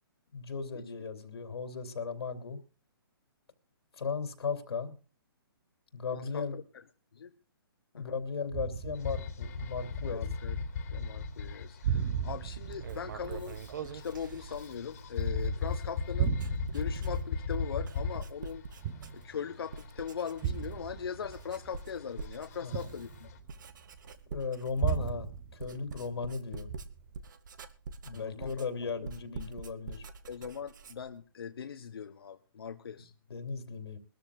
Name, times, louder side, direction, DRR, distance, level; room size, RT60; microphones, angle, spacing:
voice 1, 0.3-2.6 4.0-5.0 5.9-6.6 7.9-10.3 22.6-22.9 24.3-26.7 28.0-30.0 33.3-34.0, left 5 dB, 85° left, 6 dB, 3.0 m, -36 dB
voice 2, 6.1-6.6 7.1-7.3 7.9-8.1 10.1-10.6 10.9-16.3 16.7-18.6 19.1-23.3 28.1-28.7 30.3-33.1, left 7 dB, 70° left, 7 dB, 1.2 m, -40 dB
sound 1, 8.5-10.8 11.0-11.5 11.8-15.5 15.9-19.6 20.4-24.0 24.8-26.3 26.7-27.2, right 8 dB, 30° right, 0.9 m, -37 dB
sound 2, 8.9-23.4, left 5 dB, 35° left, 2.4 m, -38 dB
Writing, 12.7-19.4 19.7-20.9 21.2-31.2, right 5 dB, 50° right, 1.3 m, -46 dB
22.5 x 13.5 x 2.4 m, 0.35 s
hypercardioid pair, 170°, 13 cm